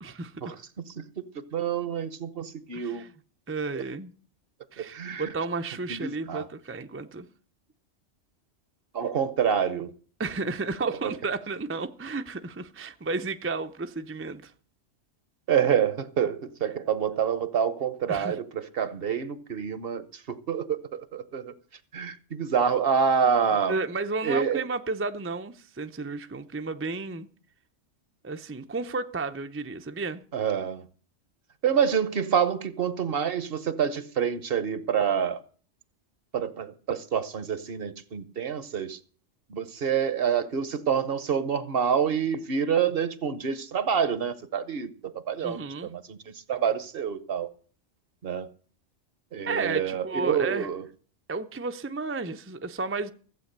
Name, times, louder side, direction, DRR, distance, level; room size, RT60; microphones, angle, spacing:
voice 1, 0.0-0.5 2.7-3.1 3.5-4.1 4.7-7.3 10.2-14.5 18.1-18.4 23.7-27.3 28.2-30.2 45.4-45.9 49.5-50.7 51.3-53.1, right 3 dB, 15° right, 0.5 m, -32 dB
voice 2, 1.5-3.1 3.7-3.8 4.8-5.3 5.9-6.4 8.9-9.9 10.9-11.1 15.5-21.5 21.9-23.8 24.2-24.6 30.3-30.8 31.6-35.4 36.3-39.0 39.5-46.2 46.5-47.5 48.2-48.5 49.3-50.8, right 7 dB, 55° right, 1.0 m, -27 dB
15.0 x 8.1 x 6.6 m
omnidirectional pair, 1.2 m